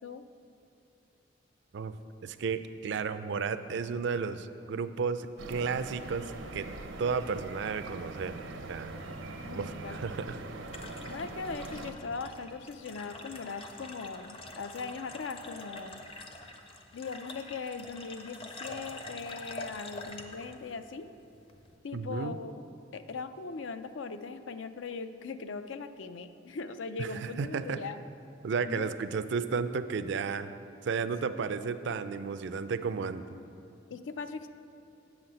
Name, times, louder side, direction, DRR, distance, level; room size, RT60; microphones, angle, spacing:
voice 1, 2.2-6.7 7.0-8.4 8.7-9.0 9.5-10.4 21.9-22.4 27.0-27.8 28.4-30.5 30.8-33.3, right 5 dB, 65° right, 12 dB, 0.4 m, -33 dB
sound 1, 5.4-11.9, right 2 dB, 90° right, 0.7 m, -42 dB
voice 2, 9.4-10.0 10.3-10.4 11.1-16.0 16.9-21.1 21.8-22.6 22.9-28.0 28.6-28.9 33.9-34.5, left 4 dB, 75° left, 10 dB, 0.5 m, -40 dB
sound 2, 10.1-21.8, left 2 dB, 30° left, 0.6 m, -46 dB
7.5 x 5.8 x 7.8 m, 2.7 s
head